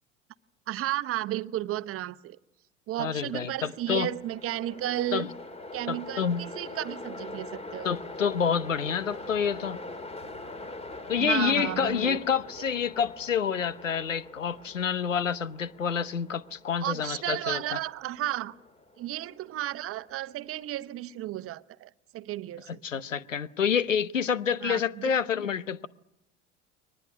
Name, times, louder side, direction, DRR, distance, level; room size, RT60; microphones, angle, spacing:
voice 1, 0.7-2.4 2.9-5.3 5.7-8.0 11.2-12.2 16.8-18.6 19.0-22.8 24.6-25.1, right 14 dB, 35° right, 0.9 m, -33 dB
voice 2, 3.0-4.1 5.1-5.3 5.9-6.4 7.8-9.8 11.1-17.8 22.7-25.9, left 7 dB, 90° left, 0.9 m, -28 dB
Train, 3.5-20.6, left 2 dB, 15° left, 2.4 m, -43 dB
22.5 x 19.5 x 9.5 m
hypercardioid pair, 80°, 37 cm